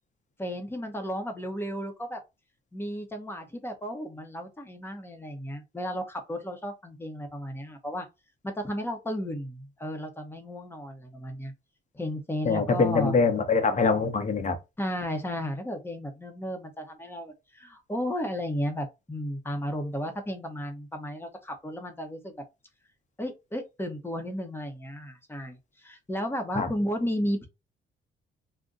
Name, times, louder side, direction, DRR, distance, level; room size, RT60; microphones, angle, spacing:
voice 1, 0.4-2.2 2.7-8.1 8.4-11.5 11.9-13.1 14.8-22.3 23.2-27.5, equal, 10° left, 0.9 m, -34 dB
voice 2, 12.4-14.6 26.5-26.7, left 4 dB, 40° left, 0.8 m, -24 dB
2.5 x 2.2 x 3.7 m
cardioid pair, 90°, 20 cm